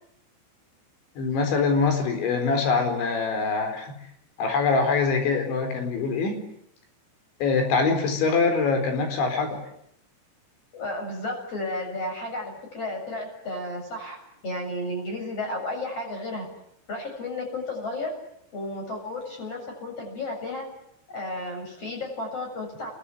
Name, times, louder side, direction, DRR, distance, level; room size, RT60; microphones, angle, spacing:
voice 1, 1.2-4.0 4.4-6.4 7.4-9.6, left 4 dB, 85° left, 6 dB, 6.7 m, -24 dB
voice 2, 10.7-16.5 16.9-18.1 18.5-20.7 21.1-22.9, left 2 dB, 30° left, 1 dB, 8.6 m, -33 dB
27.0 x 21.5 x 10.0 m, 0.75 s
omnidirectional pair, 5.2 m